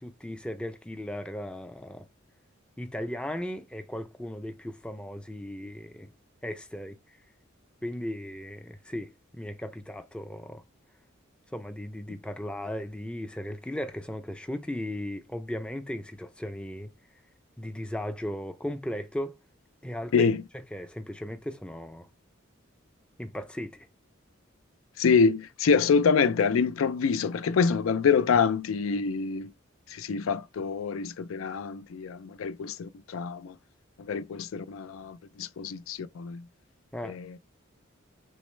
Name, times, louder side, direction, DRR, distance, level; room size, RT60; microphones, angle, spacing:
voice 1, 0.0-2.1 2.8-6.1 6.4-7.2 7.8-10.6 11.5-16.9 17.6-19.4 19.8-20.3 20.7-22.1 23.2-23.9 36.9-37.2, left 1 dB, 5° left, 0.4 m, -36 dB
voice 2, 25.0-29.5 29.9-33.5 34.1-36.4 37.0-37.4, left 5 dB, 85° left, 0.4 m, -26 dB
6.3 x 2.1 x 3.2 m
head